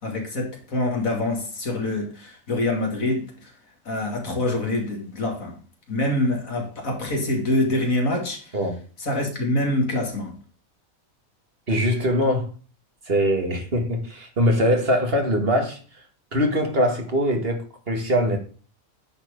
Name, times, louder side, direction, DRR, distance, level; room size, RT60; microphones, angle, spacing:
voice 1, 0.0-3.5 3.9-5.5 5.9-8.5 9.0-10.3, left 2 dB, 70° left, 2.8 m, -25 dB
voice 2, 11.7-12.5 13.1-15.8 16.3-18.4, equal, 45° right, 2.1 m, -22 dB
9.9 x 4.7 x 5.1 m
omnidirectional pair, 1.5 m